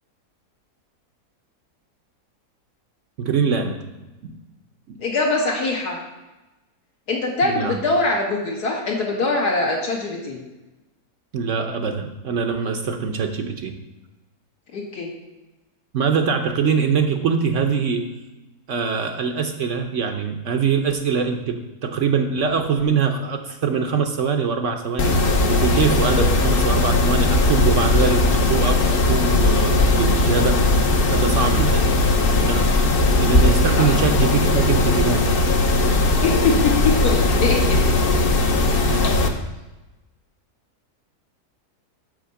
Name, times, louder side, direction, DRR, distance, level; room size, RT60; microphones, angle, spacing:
voice 1, 3.2-3.8 4.2-4.4 4.9-5.0 7.4-7.8 11.3-13.8 15.9-18.1 18.7-25.2 25.5-30.7 31.1-31.9 32.4-32.9 33.2-35.3 38.8-39.2, right 5 dB, 60° right, 5 dB, 0.9 m, -23 dB
voice 2, 5.0-6.0 7.1-10.4 14.7-15.1 33.8-33.9 36.2-37.8, left 3 dB, 80° left, -2 dB, 2.2 m, -22 dB
Mechanisms, 25.0-39.3, left 2 dB, 50° left, 0.8 m, -18 dB
6.2 x 5.3 x 6.9 m, 1.1 s
omnidirectional pair, 1.7 m